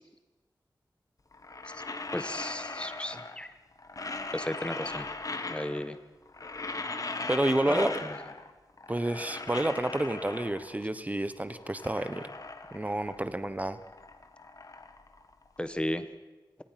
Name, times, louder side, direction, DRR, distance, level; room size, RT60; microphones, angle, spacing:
adapter.rolling, 1.3-3.5 3.8-6.0 6.3-8.5 8.8-10.9 11.3-13.3 13.6-15.8, left 3 dB, 45° left, 1.6 m, -39 dB
voice 1, 2.1-3.5 4.3-5.1 5.5-6.0 7.7-8.2 15.6-16.1, left 1 dB, 15° left, 11 dB, 1.1 m, -34 dB
voice 2, 7.3-7.9 8.9-12.3 12.7-13.8, right 1 dB, 20° right, 12 dB, 1.1 m, -29 dB
26.0 x 18.0 x 6.0 m, 1.1 s
wide cardioid pair, 100°, 8 cm